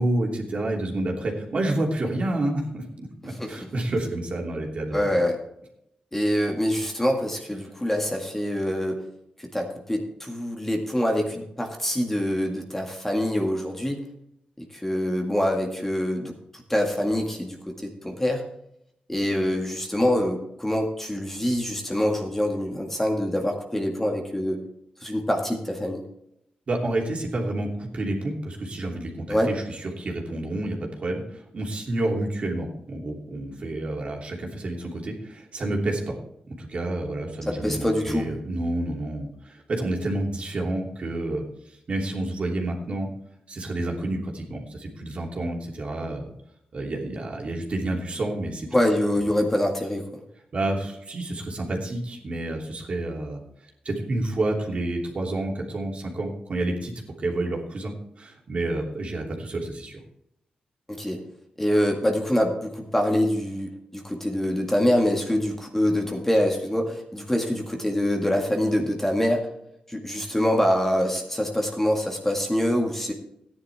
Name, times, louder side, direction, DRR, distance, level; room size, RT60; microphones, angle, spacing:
voice 1, 0.0-5.1 26.7-36.2 36.5-43.1 43.5-46.3 46.7-48.7 50.5-60.0, right 2 dB, 50° right, -1 dB, 3.0 m, -29 dB
voice 2, 4.9-5.4 6.1-9.0 9.4-14.0 14.7-16.3 16.7-18.4 19.1-24.6 25.0-26.0 29.3-29.5 37.5-38.3 48.7-50.0 60.9-61.2 61.6-69.5 69.9-73.1, equal, 10° left, 1 dB, 1.9 m, -25 dB
14.5 x 10.0 x 3.6 m, 0.78 s
cardioid pair, 95°, 3 cm